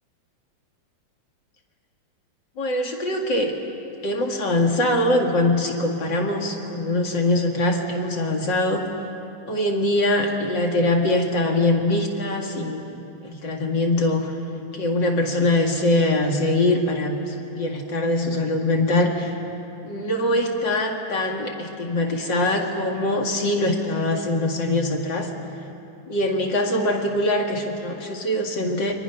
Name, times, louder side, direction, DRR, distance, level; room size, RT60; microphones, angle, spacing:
voice 1, 2.6-3.5 4.0-8.9 9.5-14.4 14.7-19.4 19.8-25.3 26.1-28.9, left 1 dB, 40° left, 2 dB, 1.7 m, -23 dB
30.0 x 23.5 x 5.9 m, 2.9 s
omnidirectional pair, 4.4 m